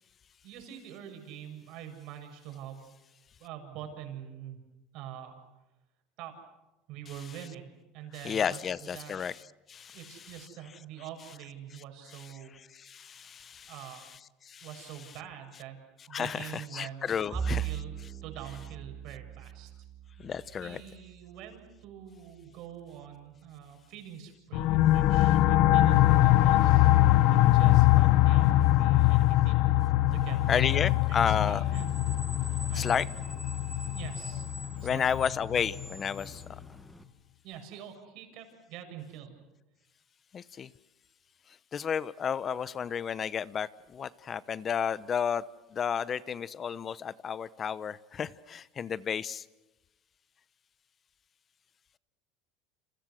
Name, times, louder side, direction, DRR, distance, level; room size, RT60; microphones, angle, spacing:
voice 1, 0.4-2.8 3.4-4.6 4.9-5.4 6.2-6.4 6.9-9.1 9.9-12.5 13.7-14.0 14.6-15.8 16.1-17.0 17.3-19.7 20.2-20.3 20.6-26.9 27.3-29.6 30.1-32.0 32.7-33.0 33.9-34.5 34.8-35.0 37.4-39.4, right 10 dB, 60° right, 5 dB, 6.9 m, -45 dB
voice 2, 8.2-9.3 9.7-10.0 12.7-13.7 14.5-14.7 16.1-17.6 20.2-20.8 30.5-31.6 32.8-33.0 34.8-36.4 40.3-40.7 41.7-45.4 45.7-49.4, left 7 dB, 30° left, 18 dB, 0.9 m, -31 dB
Bowed string instrument, 17.3-21.9, right 8 dB, 15° right, 2.2 m, -38 dB
sound 1, 24.5-35.9, left 15 dB, 65° left, 0.8 m, -23 dB
Screech, 31.2-37.0, equal, 5° left, 1.7 m, -46 dB
30.0 x 28.0 x 6.5 m, 1.1 s
supercardioid pair, 120°, 0 cm